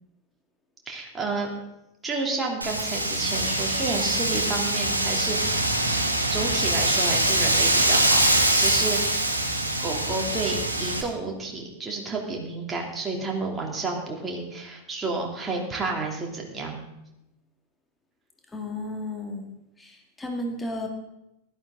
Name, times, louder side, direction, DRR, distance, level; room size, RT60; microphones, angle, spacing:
voice 1, 0.9-1.5 2.0-5.7 6.3-9.3 9.8-16.8, right 3 dB, 15° right, -1 dB, 3.0 m, -31 dB
Wind, 2.6-11.0, right 1 dB, 85° right, 1.6 m, -23 dB
voice 2, 18.5-19.5 19.8-20.9, left 1 dB, 10° left, 2 dB, 2.2 m, -33 dB
15.5 x 12.5 x 3.9 m, 0.88 s
figure-of-eight pair, 90°, 0 cm